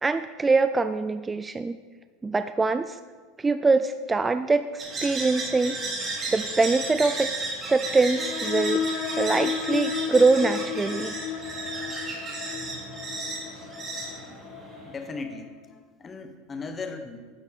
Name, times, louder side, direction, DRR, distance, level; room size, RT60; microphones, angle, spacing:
voice 1, 0.0-1.8 2.2-3.0 3.4-5.8 6.3-8.8 9.2-11.1, right 3 dB, 15° right, 11 dB, 0.3 m, -23 dB
sound 1, 4.8-15.0, right 3 dB, 30° right, 3.0 m, -34 dB
sound 2, 8.2-15.5, left 8 dB, 55° left, 0.5 m, -33 dB
voice 2, 14.8-17.2, left 4 dB, 25° left, 7 dB, 1.2 m, -37 dB
11.5 x 7.0 x 4.1 m, 1.4 s
hypercardioid pair, 100°, 0 cm